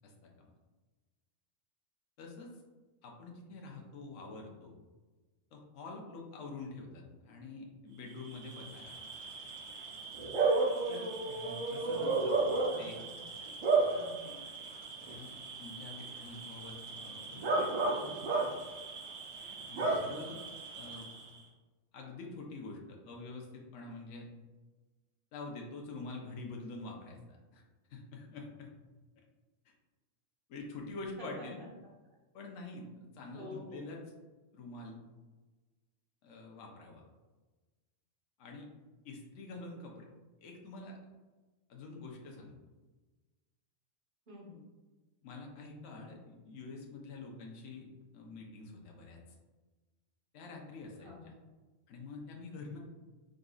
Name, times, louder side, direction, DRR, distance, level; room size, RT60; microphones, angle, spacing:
voice 1, 0.0-0.5 2.2-2.5 3.0-4.7 5.5-8.9 10.9-12.5 12.8-13.0 15.1-15.3 15.6-17.7 18.0-18.1 19.7-20.4 20.7-21.1 21.9-24.3 25.3-27.6 27.9-28.7 29.6-29.7 30.5-31.6 32.3-34.0 34.5-35.0 36.2-37.0 38.4-38.7 39.0-40.1 40.4-41.0 41.7-42.5 45.2-47.9 48.1-49.2 50.3-51.1 51.9-52.8, left 3 dB, 70° left, 0 dB, 1.1 m, -46 dB
Bark / Cricket, 8.1-21.4, right 3 dB, 75° right, 1.3 m, -34 dB
voice 2, 12.7-13.5 13.9-14.5 19.7-20.2 31.2-31.6 33.3-34.0 44.3-44.6 51.0-51.4, left 2 dB, 40° right, -4 dB, 1.3 m, -49 dB
5.1 x 3.8 x 2.3 m, 1.2 s
omnidirectional pair, 1.4 m